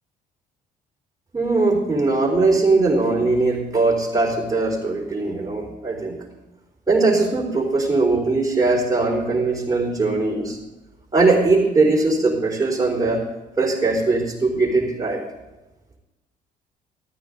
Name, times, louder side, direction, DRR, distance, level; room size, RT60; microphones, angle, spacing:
voice 1, 1.3-6.2 6.9-10.6 11.1-13.2 13.6-15.2, right 3 dB, 20° right, -3 dB, 4.1 m, -20 dB
14.0 x 13.5 x 3.8 m, 1.0 s
figure-of-eight pair, 50°, 21 cm